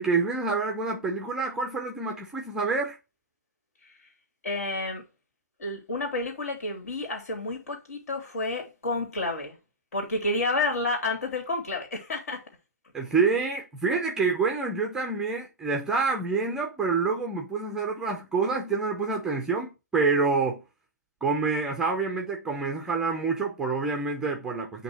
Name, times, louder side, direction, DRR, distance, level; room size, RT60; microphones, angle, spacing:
voice 1, 0.0-3.0 12.9-20.6 21.2-24.8, right 4 dB, 5° right, 0.6 m, -27 dB
voice 2, 4.4-5.0 5.6-9.6 9.9-12.4, left 2 dB, 55° left, 2.8 m, -30 dB
8.6 x 2.9 x 4.5 m
figure-of-eight pair, 140°, 10 cm